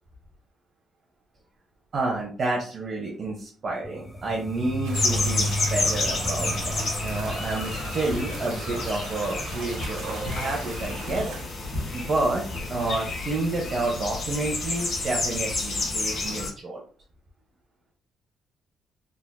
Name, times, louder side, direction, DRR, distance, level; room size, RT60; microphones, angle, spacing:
voice 1, 1.9-11.3 11.9-12.4 12.7-16.8, right 2 dB, 50° right, -1 dB, 0.8 m, -29 dB
sound 1, 3.8-13.6, equal, 15° left, 0.4 m, -35 dB
sound 2, 4.8-11.4, right 4 dB, 85° right, 0.6 m, -39 dB
sound 3, 4.9-16.5, left 2 dB, 45° left, 1.5 m, -30 dB
3.5 x 2.6 x 2.2 m, 0.42 s
cardioid pair, 90°, 0 cm